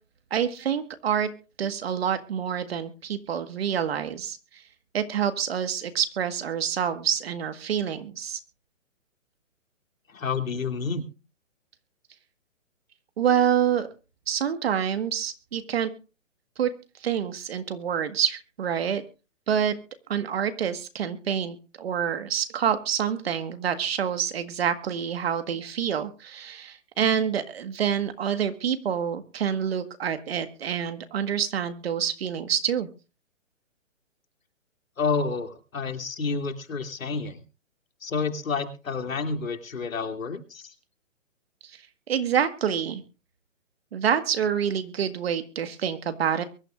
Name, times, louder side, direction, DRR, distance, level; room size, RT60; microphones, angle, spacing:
voice 1, 0.3-1.3 1.6-4.4 4.9-8.4 13.2-13.9 14.3-15.9 16.6-16.7 17.0-19.0 19.5-19.8 20.1-32.9 42.1-43.0 43.9-46.4, right 8 dB, 50° right, 9 dB, 1.7 m, -27 dB
voice 2, 10.1-11.0 35.0-37.4 38.0-40.7, left 4 dB, 85° left, 6 dB, 2.8 m, -29 dB
23.5 x 13.0 x 2.5 m, 0.33 s
hypercardioid pair, 160°, 39 cm